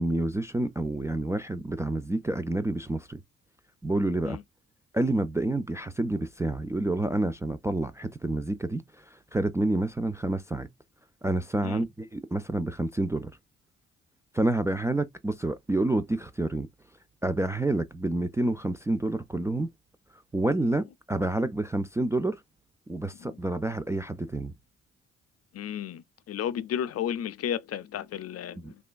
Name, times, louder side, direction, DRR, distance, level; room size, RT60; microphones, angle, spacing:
voice 1, 0.0-3.2 3.8-4.4 4.9-8.8 9.3-10.7 11.2-13.3 14.3-16.7 17.2-19.7 20.3-22.4 22.9-24.5 28.6-28.7, right 2 dB, 10° right, 0.3 m, -28 dB
voice 2, 25.5-28.7, left 9 dB, 50° left, 0.5 m, -33 dB
3.3 x 2.1 x 2.2 m
hypercardioid pair, 50°, 32 cm